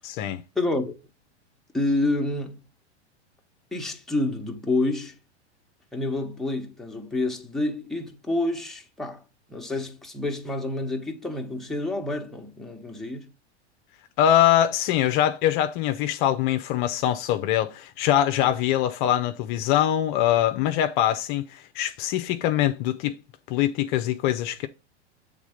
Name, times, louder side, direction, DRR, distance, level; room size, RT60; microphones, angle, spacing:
voice 1, 0.0-0.4 14.2-23.1 23.5-24.7, left 11 dB, 50° left, 0.6 m, -23 dB
voice 2, 0.5-0.9 1.7-2.6 3.7-5.2 5.9-9.2 9.5-13.3, left 2 dB, ahead, 1.1 m, -28 dB
7.3 x 3.6 x 5.1 m
hypercardioid pair, 105°, 34 cm